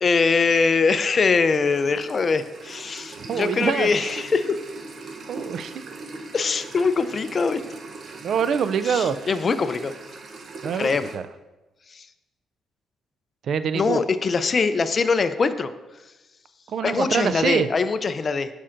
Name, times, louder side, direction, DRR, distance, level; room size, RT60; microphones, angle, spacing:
voice 1, 0.0-4.6 6.3-7.6 8.8-9.9 10.7-11.1 11.9-12.1 13.7-15.7 16.8-18.5, left 4 dB, 40° left, 11 dB, 0.4 m, -22 dB
sound 1, 1.1-11.2, right 3 dB, 50° right, 0.7 m, -40 dB
voice 2, 3.2-3.9 5.3-5.7 8.2-9.3 10.6-11.2 13.5-14.0 16.7-17.7, right 7 dB, 65° right, 13 dB, 0.3 m, -25 dB
8.6 x 5.2 x 2.5 m, 1.1 s
cardioid pair, 90°, 0 cm